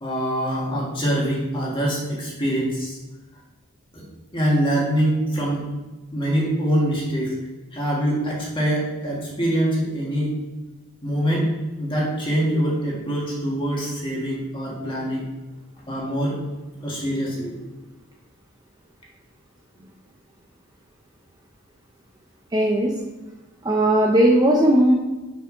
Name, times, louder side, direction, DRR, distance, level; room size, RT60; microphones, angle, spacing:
voice 1, 0.0-3.0 3.9-4.0 4.3-5.7 6.1-7.4 7.7-10.4 11.0-11.5 11.8-15.3 15.9-16.4 16.8-17.5, equal, 25° left, -4 dB, 1.9 m, -24 dB
voice 2, 22.5-22.9 23.6-24.9, right 1 dB, 20° right, -1 dB, 0.6 m, -17 dB
6.6 x 4.8 x 5.1 m, 1.1 s
head